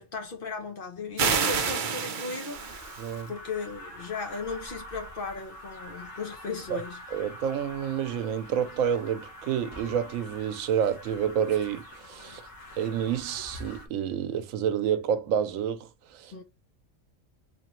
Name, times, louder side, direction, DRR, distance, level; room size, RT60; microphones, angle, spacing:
voice 1, 0.0-2.6 3.3-7.0 16.3-16.4, left 4 dB, 50° left, 0.8 m, -36 dB
sound 1, 1.2-3.2, right 6 dB, 50° right, 0.6 m, -28 dB
sound 2, 2.5-13.9, left 1 dB, 75° left, 1.7 m, -45 dB
voice 2, 3.0-3.3 6.7-6.8 7.1-12.4 12.8-16.3, right 8 dB, 85° right, 1.0 m, -29 dB
4.2 x 2.9 x 2.9 m
omnidirectional pair, 1.4 m